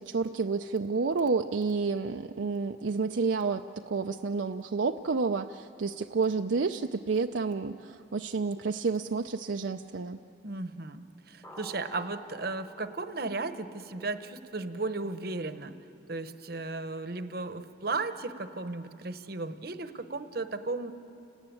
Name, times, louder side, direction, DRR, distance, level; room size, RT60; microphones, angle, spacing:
voice 1, 0.0-10.2, right 4 dB, 70° right, 5 dB, 0.5 m, -30 dB
sound 1, 3.7-6.2 7.6-7.7 11.4-15.1, left 1 dB, 15° left, 1.1 m, -53 dB
voice 2, 10.4-15.7 16.1-20.9, right 3 dB, 50° right, 10 dB, 1.0 m, -35 dB
29.5 x 18.5 x 9.1 m, 2.7 s
head